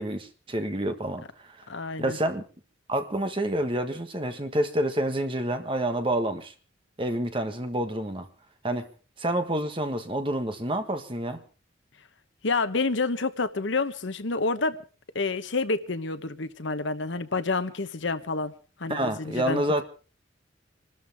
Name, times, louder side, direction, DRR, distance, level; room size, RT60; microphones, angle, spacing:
voice 1, 0.0-1.7 2.0-2.5 2.9-6.5 7.0-8.3 8.6-8.9 9.2-11.4 18.9-19.8, right 1 dB, 25° right, 1.5 m, -28 dB
voice 2, 1.7-2.2 12.4-14.8 15.1-18.5 18.8-19.8, left 3 dB, 70° left, 1.1 m, -28 dB
26.0 x 13.0 x 3.6 m
head